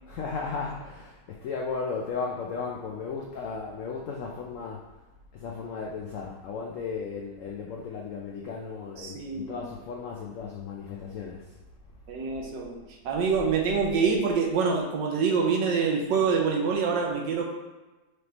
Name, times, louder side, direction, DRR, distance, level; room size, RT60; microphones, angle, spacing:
voice 1, 0.1-4.8 5.3-11.5, left 5 dB, 80° left, -1 dB, 0.7 m, -35 dB
voice 2, 9.0-9.6 12.1-12.8 13.0-17.4, right 5 dB, 90° right, 0 dB, 1.4 m, -26 dB
4.9 x 3.3 x 2.9 m, 1.1 s
omnidirectional pair, 1.9 m